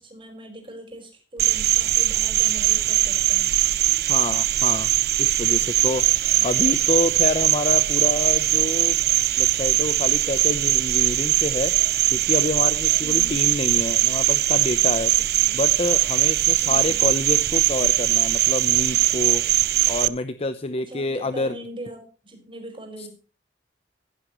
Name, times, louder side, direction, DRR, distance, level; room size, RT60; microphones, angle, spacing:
voice 1, 0.0-3.5 6.3-6.7 13.0-13.4 15.2-15.6 16.6-17.0 20.8-23.1, right 1 dB, 30° right, 4 dB, 5.0 m, -41 dB
Cricket, 1.4-20.1, right 15 dB, 60° right, 0.6 m, -21 dB
voice 2, 4.1-4.9 5.2-9.0 9.4-11.7 12.1-15.1 15.5-19.4 19.9-21.6 23.0-23.1, left 2 dB, 35° left, 11 dB, 0.7 m, -27 dB
16.0 x 11.0 x 3.1 m, 0.38 s
head